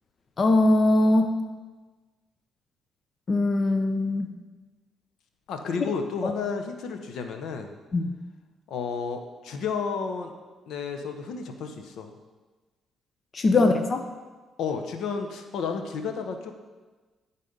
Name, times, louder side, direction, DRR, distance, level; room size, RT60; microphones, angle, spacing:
voice 1, 0.4-1.3 3.3-4.3 6.2-6.3 7.9-8.1 13.3-14.0, left 2 dB, 40° left, 6 dB, 0.6 m, -21 dB
voice 2, 5.5-7.8 8.7-10.3 10.7-12.1 13.5-13.7 14.6-16.5, left 5 dB, 75° left, 5 dB, 0.7 m, -32 dB
10.5 x 4.2 x 5.1 m, 1.3 s
cardioid pair, 90°, 0 cm